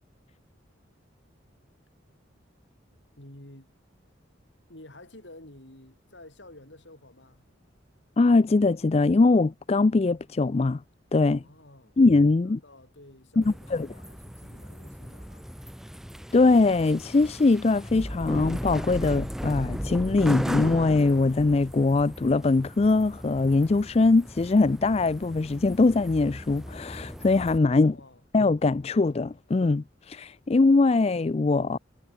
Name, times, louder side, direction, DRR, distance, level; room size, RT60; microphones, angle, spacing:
voice 1, 3.2-3.7 4.7-7.5 11.4-12.0 12.4-15.5 27.8-28.2, left 1 dB, 65° left, 4.9 m, -50 dB
voice 2, 8.2-10.8 11.1-11.4 12.0-12.6 13.4-13.9 16.3-28.0 28.3-31.8, left 3 dB, 30° left, 0.4 m, -22 dB
sound 1, 13.4-27.6, equal, ahead, 1.5 m, -36 dB
head